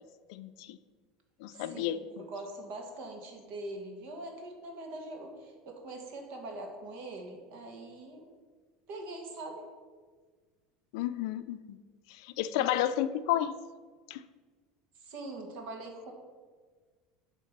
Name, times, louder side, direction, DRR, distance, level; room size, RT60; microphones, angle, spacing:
voice 1, 0.3-0.8 1.4-2.2 10.9-11.8 12.4-13.5 14.1-14.2, left 11 dB, 75° left, 13 dB, 0.4 m, -31 dB
voice 2, 1.5-8.3 8.9-9.7 12.5-12.8 14.9-16.1, right 2 dB, 60° right, 2 dB, 1.7 m, -43 dB
9.3 x 3.4 x 6.6 m, 1.5 s
cardioid pair, 150°, 3 cm